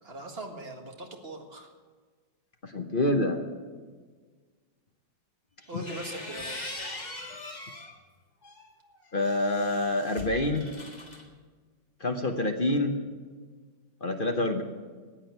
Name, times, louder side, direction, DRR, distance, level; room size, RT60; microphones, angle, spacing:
voice 1, 0.0-1.7 5.7-6.6 14.2-14.6, right 1 dB, 35° right, 2 dB, 1.8 m, -41 dB
voice 2, 2.6-3.4 5.7-5.8 9.1-10.7 12.0-12.9 14.0-14.6, left 2 dB, 40° left, 4 dB, 0.8 m, -27 dB
sound 1, 5.6-7.9 8.4-11.2, left 2 dB, 25° left, 1.7 m, -41 dB
15.0 x 9.1 x 7.9 m, 1.5 s
omnidirectional pair, 2.1 m